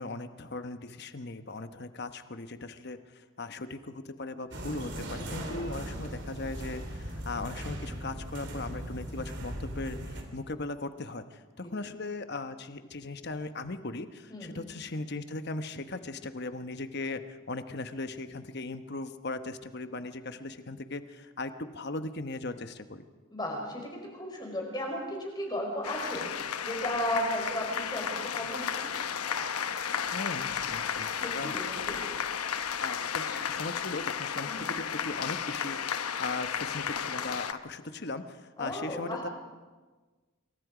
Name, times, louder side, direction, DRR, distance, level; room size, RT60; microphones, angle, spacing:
voice 1, 0.0-10.0 10.3-23.1 30.1-31.6 32.8-39.3, left 2 dB, 50° left, 9 dB, 1.1 m, -38 dB
sound 1, 4.5-10.2, right 1 dB, 50° right, 3.2 m, -38 dB
voice 2, 23.3-28.9 31.2-32.0 33.3-33.4 34.5-34.7 38.6-39.2, equal, 20° left, 0 dB, 4.9 m, -35 dB
sound 2, 25.8-37.5, left 7 dB, 85° left, 1.0 m, -33 dB
26.5 x 23.5 x 5.1 m, 1.3 s
head